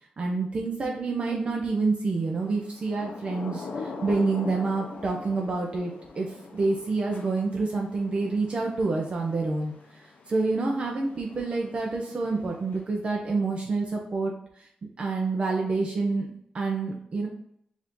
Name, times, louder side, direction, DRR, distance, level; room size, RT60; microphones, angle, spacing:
voice 1, 0.2-9.7 10.3-14.7 15.0-17.3, right 3 dB, 45° right, 0 dB, 0.7 m, -28 dB
Thunder / Rain, 2.6-13.2, left 4 dB, 75° left, 0.8 m, -43 dB
4.8 x 2.7 x 3.6 m, 0.71 s
wide cardioid pair, 135°, 3 cm